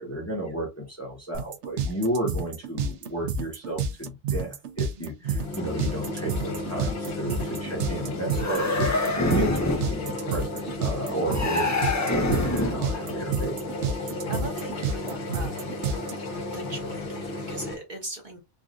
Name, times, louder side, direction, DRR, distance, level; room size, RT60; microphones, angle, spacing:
voice 1, 0.0-13.6, equal, 15° left, 0.9 m, -33 dB
sound 1, 1.3-16.1, right 4 dB, 80° right, 0.9 m, -29 dB
voice 2, 5.0-5.3 11.0-11.1 14.0-15.8 16.4-18.4, right 2 dB, 45° right, 1.1 m, -40 dB
sound 2, 5.2-17.8, left 2 dB, 70° left, 1.3 m, -33 dB
sound 3, 8.3-9.9 11.3-12.9, left 2 dB, 30° left, 0.3 m, -26 dB
3.5 x 2.4 x 2.4 m
omnidirectional pair, 1.2 m